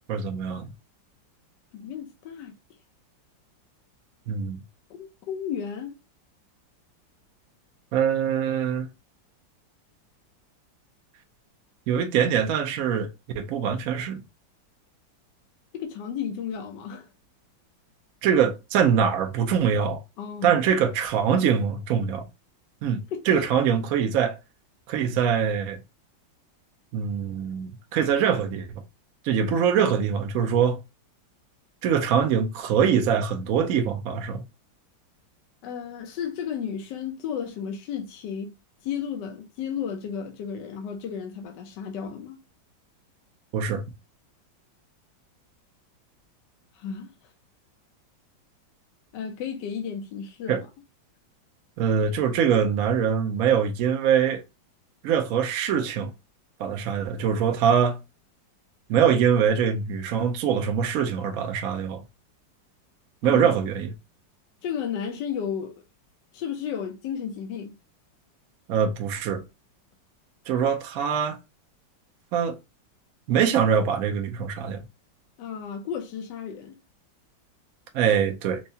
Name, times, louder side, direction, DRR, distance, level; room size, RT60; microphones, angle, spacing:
voice 1, 0.1-0.7 4.3-4.6 7.9-8.9 11.9-13.1 13.3-14.2 18.2-20.0 20.4-22.3 22.8-24.4 24.9-25.8 26.9-28.8 29.2-30.8 31.8-34.4 43.5-43.8 50.5-50.6 51.8-54.4 55.0-56.1 56.6-58.0 58.9-62.0 63.2-63.9 68.7-69.4 70.5-71.4 72.3-72.6 73.3-74.8 77.9-78.6, right 7 dB, 70° right, 0.8 m, -23 dB
voice 2, 1.7-2.5 4.9-6.0 15.7-17.1 20.2-20.5 23.1-23.3 35.6-38.5 38.8-42.4 46.7-47.1 49.1-50.7 63.2-63.4 64.6-65.8 66.3-67.7 75.4-76.8, left 7 dB, 70° left, 1.2 m, -33 dB
4.5 x 2.1 x 2.6 m
omnidirectional pair, 2.1 m